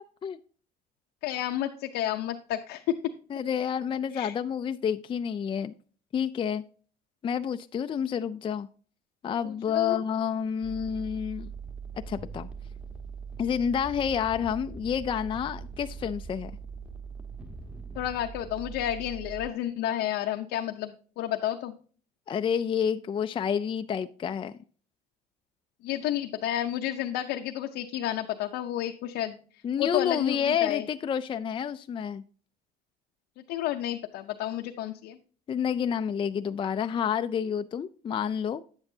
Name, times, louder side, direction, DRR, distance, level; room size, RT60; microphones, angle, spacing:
voice 1, 1.2-3.0 4.1-4.3 9.4-10.0 17.9-21.7 25.8-30.8 33.5-35.2, left 12 dB, 85° left, 0.7 m, -31 dB
voice 2, 3.3-5.7 6.1-6.6 7.2-8.7 9.2-11.5 12.1-12.5 13.4-16.5 22.3-24.5 29.6-32.2 35.5-38.6, left 8 dB, 30° left, 0.4 m, -29 dB
sound 1, 10.6-19.5, right 5 dB, 5° right, 1.2 m, -41 dB
9.6 x 8.0 x 2.7 m
cardioid pair, 110°, 17 cm